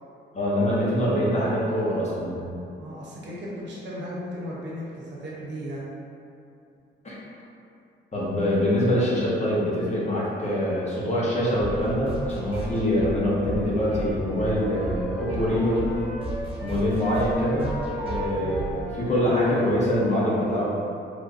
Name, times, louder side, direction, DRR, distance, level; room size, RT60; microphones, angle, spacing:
voice 1, 0.3-2.6 7.0-7.2 8.1-15.8 16.6-17.7 18.0-20.6, left 1 dB, 35° left, -7 dB, 0.9 m, -24 dB
voice 2, 2.8-5.8 18.4-18.7, equal, 65° right, -6 dB, 0.9 m, -36 dB
sound 1, 11.6-20.0, right 2 dB, 25° right, 1.0 m, -35 dB
Wind instrument woodwind instrument, 14.1-16.7 17.0-19.8, equal, 10° left, 1.2 m, -37 dB
3.5 x 2.5 x 2.5 m, 2.6 s
cardioid pair, 90°, 20 cm